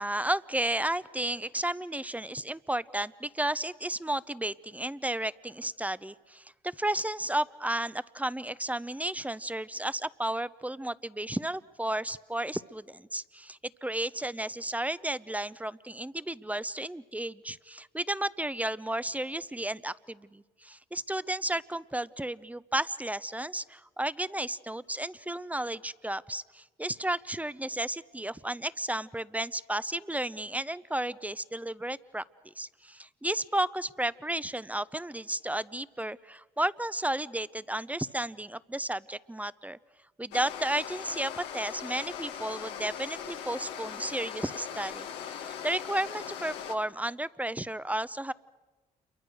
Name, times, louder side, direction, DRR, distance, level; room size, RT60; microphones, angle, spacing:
voice 1, 0.0-32.2 32.6-39.8 40.2-48.3, right 1 dB, 10° right, 17 dB, 0.8 m, -33 dB
sound 1, 40.3-46.7, left 8 dB, 85° left, 1.8 m, -40 dB
28.5 x 23.5 x 6.4 m, 1.2 s
supercardioid pair, 55°, 18 cm